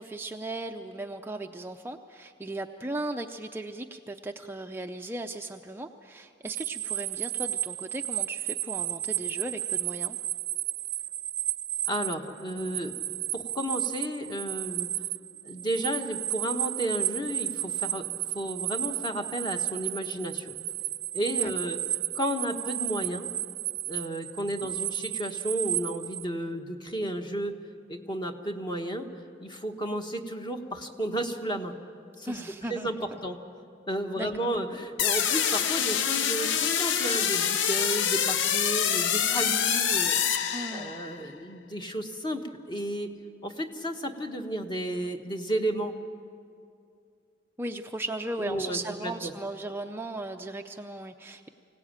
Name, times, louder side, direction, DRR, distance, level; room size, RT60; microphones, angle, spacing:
voice 1, 0.0-10.2 21.4-21.5 32.3-33.2 34.2-34.3 40.5-41.0 47.6-51.5, right 2 dB, 10° right, 4 dB, 0.5 m, -37 dB
sound 1, 6.5-26.2, right 13 dB, 75° right, 0.6 m, -33 dB
voice 2, 11.9-12.9 13.3-14.9 15.4-20.5 21.1-21.8 22.1-23.3 23.9-27.6 27.9-29.1 29.4-31.7 32.2-32.4 32.7-33.4 33.9-40.4 40.7-43.1 43.4-45.9 48.4-49.3, right 1 dB, 25° left, 4 dB, 1.4 m, -33 dB
sound 2, 35.0-41.2, left 8 dB, 90° left, 0.8 m, -26 dB
25.0 x 17.5 x 8.9 m, 2.4 s
head